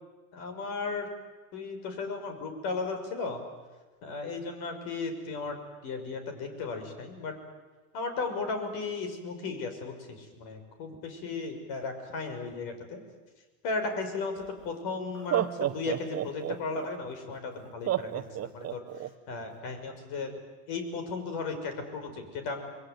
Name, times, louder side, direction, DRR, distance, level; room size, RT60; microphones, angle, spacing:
voice 1, 0.3-1.1 1.5-3.4 4.0-7.4 7.9-13.0 13.6-18.8 19.3-20.3 20.7-22.6, left 4 dB, 65° left, 6 dB, 6.5 m, -35 dB
Laughter, 14.4-14.5 15.1-16.9 17.9-19.1, right 12 dB, 35° right, 1.2 m, -30 dB
28.0 x 22.0 x 9.4 m, 1.3 s
supercardioid pair, 120°, 40 cm